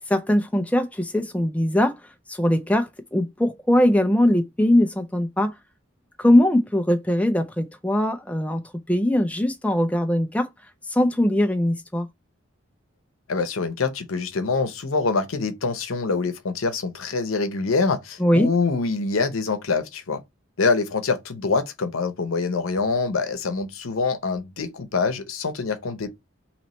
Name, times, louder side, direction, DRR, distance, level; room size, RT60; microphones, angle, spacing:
voice 1, 0.1-2.0 2.3-5.5 6.2-8.6 8.9-10.5 10.9-12.1 18.2-18.5, left 1 dB, 5° left, 0.4 m, -21 dB
voice 2, 13.3-20.2 20.6-26.1, left 4 dB, 80° left, 0.8 m, -25 dB
3.1 x 3.0 x 4.1 m
head